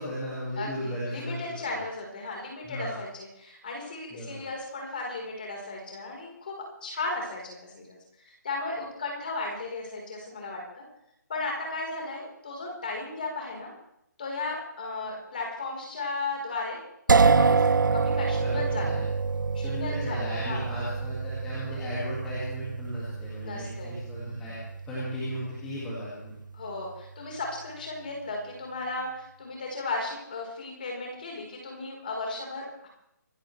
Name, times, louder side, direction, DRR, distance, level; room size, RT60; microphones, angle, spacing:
voice 1, 0.0-1.8 2.6-3.0 4.1-4.5 18.4-19.0 19.6-24.6 24.9-26.3, equal, 5° left, -9 dB, 2.1 m, -36 dB
voice 2, 0.6-6.5 6.8-8.0 8.4-10.8 11.3-13.7 14.2-16.8 17.3-19.0 19.5-20.7 23.4-24.5 25.0-25.1 26.5-32.9, left 3 dB, 25° left, -1 dB, 4.2 m, -35 dB
sound 1, 17.1-26.9, right 4 dB, 90° right, 0.8 m, -27 dB
25.5 x 12.5 x 3.3 m, 0.77 s
hypercardioid pair, 180°, 10 cm